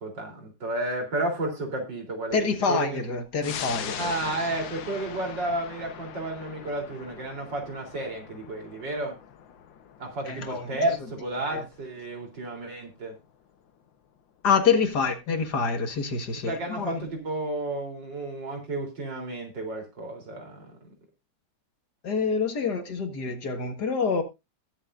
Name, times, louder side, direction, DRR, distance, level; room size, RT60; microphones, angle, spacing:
voice 1, 0.0-3.0 3.9-9.1 10.0-13.1 15.0-15.1 16.4-20.9, right 2 dB, 70° right, 4.3 m, -32 dB
voice 2, 2.3-4.1 10.3-10.8 11.5-11.6 14.4-17.1 22.0-24.2, left 5 dB, 60° left, 2.1 m, -26 dB
sound 1, 3.4-14.4 14.8-14.9, left 8 dB, 85° left, 1.8 m, -42 dB
21.5 x 7.2 x 2.6 m
omnidirectional pair, 2.0 m